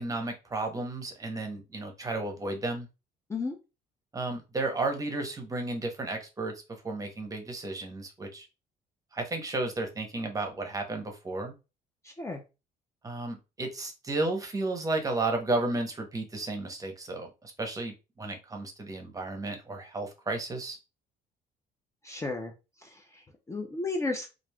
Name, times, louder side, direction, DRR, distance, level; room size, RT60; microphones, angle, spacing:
voice 1, 0.0-2.9 4.1-6.5 6.8-8.5 9.1-11.5 13.0-20.8, right 2 dB, 20° right, 4 dB, 0.8 m, -33 dB
voice 2, 12.0-12.4 22.0-22.5 22.8-24.3, left 3 dB, 15° left, 2 dB, 0.5 m, -34 dB
3.1 x 2.4 x 2.2 m, 0.28 s
cardioid pair, 110°, 17 cm